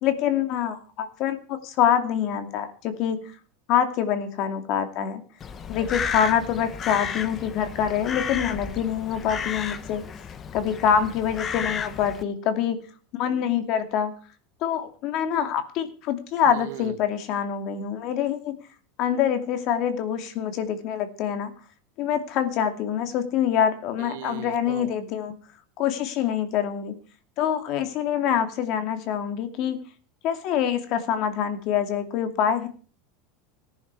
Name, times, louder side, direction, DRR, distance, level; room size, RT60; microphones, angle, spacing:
voice 1, 0.0-3.3 3.7-5.2 5.7-10.0 10.5-12.9 13.2-14.1 14.6-18.6 19.0-21.5 22.0-25.3 25.8-27.0 27.4-29.8 30.2-32.7, left 8 dB, 50° left, 8 dB, 2.5 m, -25 dB
Crow, 5.4-12.2, left 7 dB, 25° left, 1.0 m, -33 dB
voice 2, 16.5-16.9 24.0-24.9, right 15 dB, 75° right, 12 dB, 1.2 m, -38 dB
18.0 x 11.0 x 4.7 m, 0.40 s
supercardioid pair, 140°, 0 cm